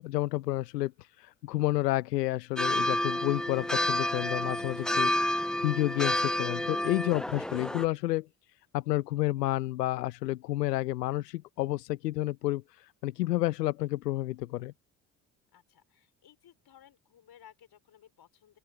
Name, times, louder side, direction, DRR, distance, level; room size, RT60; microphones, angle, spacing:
voice 1, 0.0-8.3 8.7-14.7, left 17 dB, 90° left, 0.8 m, -30 dB
sound 1, 2.6-7.8, left 1 dB, ahead, 0.3 m, -30 dB
voice 2, 15.5-18.6, left 10 dB, 50° left, 5.1 m, -58 dB
open air
hypercardioid pair, 60°, 48 cm